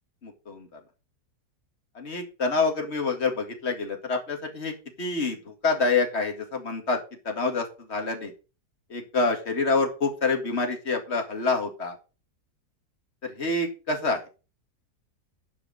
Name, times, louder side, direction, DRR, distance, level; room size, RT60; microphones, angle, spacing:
voice 1, 0.2-0.8 1.9-7.0 7.2-8.3 8.9-12.0 13.2-14.2, left 3 dB, 40° left, 3 dB, 2.3 m, -27 dB
11.0 x 5.1 x 6.3 m, 0.32 s
omnidirectional pair, 1.7 m